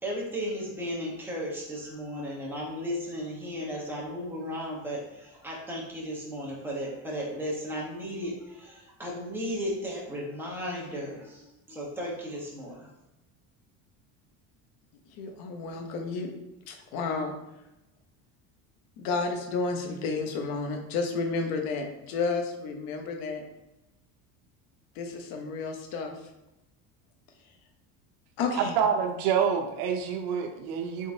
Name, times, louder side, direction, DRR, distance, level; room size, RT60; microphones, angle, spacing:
voice 1, 0.0-12.9, equal, 5° right, -4 dB, 0.9 m, -35 dB
voice 2, 15.1-16.3 16.7-17.3 19.0-23.4 24.9-26.1 28.4-28.8, left 4 dB, 70° left, 4 dB, 0.8 m, -31 dB
voice 3, 28.6-31.1, right 7 dB, 70° right, 5 dB, 0.7 m, -27 dB
3.7 x 3.6 x 2.6 m, 0.94 s
cardioid pair, 140°, 37 cm